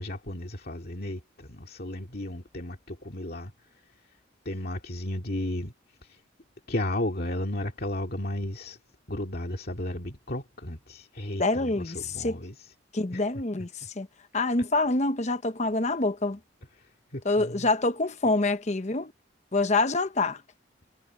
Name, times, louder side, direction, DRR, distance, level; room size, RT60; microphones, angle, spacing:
voice 1, 0.0-3.5 4.4-5.7 6.0-6.2 6.7-8.8 9.1-12.7 13.1-13.2 16.8-17.7, left 1 dB, 55° left, 2.3 m, -34 dB
voice 2, 11.4-12.4 12.9-14.1 14.3-16.4 17.2-19.1 19.5-20.4, left 2 dB, 40° left, 1.0 m, -26 dB
head